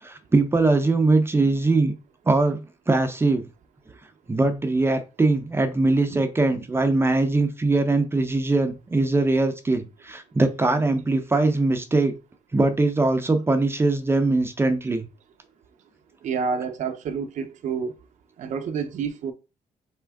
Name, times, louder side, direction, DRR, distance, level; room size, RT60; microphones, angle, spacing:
voice 1, 0.0-1.9 2.3-2.6 2.9-3.4 4.3-12.1 12.5-15.1, right 2 dB, 20° right, 0.6 m, -21 dB
voice 2, 16.2-17.9 18.4-19.3, right 6 dB, 65° right, 0.6 m, -28 dB
4.3 x 3.6 x 3.4 m
cardioid pair, 115°, 14 cm